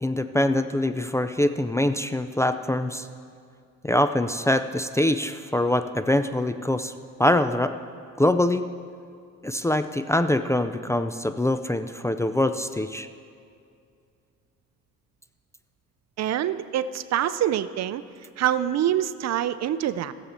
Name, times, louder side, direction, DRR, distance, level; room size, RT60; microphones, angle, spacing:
voice 1, 0.0-3.1 3.8-6.9 7.2-7.8 8.2-8.7 9.4-13.1, left 1 dB, 10° left, 9 dB, 0.4 m, -24 dB
voice 2, 16.2-18.0 18.4-20.1, right 11 dB, 60° right, 14 dB, 0.5 m, -25 dB
17.5 x 7.3 x 4.2 m, 2.3 s
cardioid pair, 90°, 30 cm